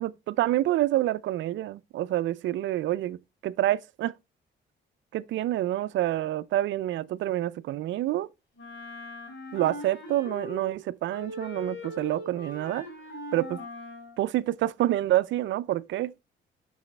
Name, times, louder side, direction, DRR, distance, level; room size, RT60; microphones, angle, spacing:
voice 1, 0.0-3.2 3.4-4.1 5.1-8.3 9.5-12.9 13.3-13.6 14.2-16.1, right 14 dB, 70° right, 0.4 m, -27 dB
Wind instrument woodwind instrument, 8.6-10.8 11.1-14.2, left 2 dB, 70° left, 2.9 m, -41 dB
6.1 x 6.1 x 3.3 m
cardioid pair, 90°, 20 cm